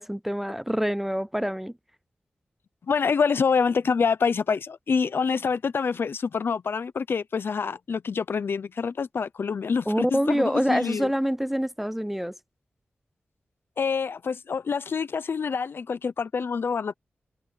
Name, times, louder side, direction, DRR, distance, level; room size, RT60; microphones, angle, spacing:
voice 1, 0.0-1.7 9.9-12.4, equal, 5° right, 0.4 m, -26 dB
voice 2, 2.9-11.1 13.8-16.9, left 5 dB, 70° left, 0.7 m, -26 dB
wide cardioid pair, 95°, 4 cm